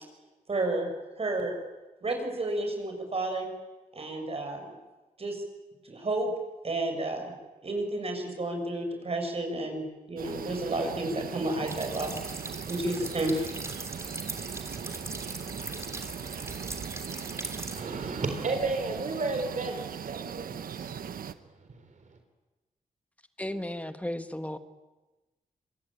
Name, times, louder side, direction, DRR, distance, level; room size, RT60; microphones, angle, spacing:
voice 1, 0.5-1.5 2.0-3.5 3.9-4.7 5.2-5.4 5.8-6.3 6.6-7.3 7.6-12.2 12.7-13.5, right 2 dB, 45° right, 6.6 m, -31 dB
sound 1, 10.2-21.3, right 8 dB, 85° right, 1.1 m, -39 dB
sound 2, 11.7-17.8, right 2 dB, 20° right, 3.2 m, -40 dB
voice 2, 17.7-20.9, right 3 dB, 60° right, 3.8 m, -32 dB
voice 3, 23.4-24.6, left 1 dB, 10° left, 1.5 m, -34 dB
26.5 x 23.0 x 9.0 m
cardioid pair, 85°, 14 cm